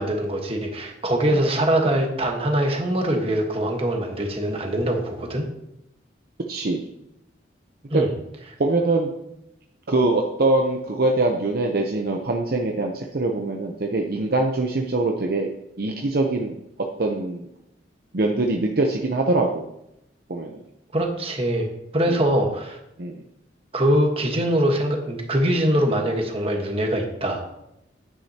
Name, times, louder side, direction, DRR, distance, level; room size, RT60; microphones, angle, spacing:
voice 1, 0.0-5.4 7.9-8.1 20.9-21.7 21.9-22.8 23.7-27.4, right 1 dB, 30° right, 2 dB, 1.3 m, -23 dB
voice 2, 6.5-6.8 7.9-8.0 8.6-9.1 9.9-15.5 15.8-16.5 17.0-17.5 18.1-19.7 20.3-20.6 22.1-22.2 23.0-23.2, right 2 dB, 55° right, 1 dB, 0.7 m, -23 dB
10.0 x 9.2 x 2.9 m, 0.84 s
head